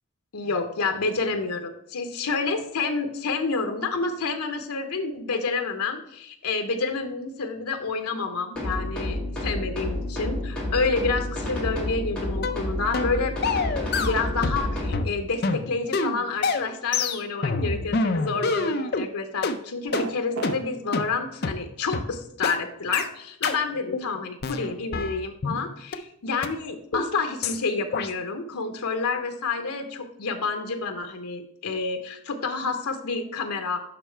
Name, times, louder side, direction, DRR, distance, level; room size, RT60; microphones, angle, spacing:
voice 1, 0.3-13.3 14.0-33.8, left 4 dB, 85° left, 6 dB, 0.7 m, -29 dB
sound 1, 8.6-15.0, left 1 dB, 5° left, 1.8 m, -30 dB
sound 2, 12.4-12.6 12.9-13.1 13.4-14.7 14.9-19.1 19.4-19.6 19.9-20.1 20.4-20.6 20.9-21.1 21.4-21.6 21.9-22.1 22.4-22.6 22.9-23.1 23.4-23.6 23.9-24.1 24.4-25.6 25.9-26.0 26.4-26.5 26.9-27.1 27.4-27.6 27.9-28.1, left 4 dB, 45° left, 0.5 m, -26 dB
sound 3, 19.9-20.6, right 4 dB, 80° right, 0.7 m, -31 dB
6.8 x 5.4 x 4.4 m, 0.75 s
head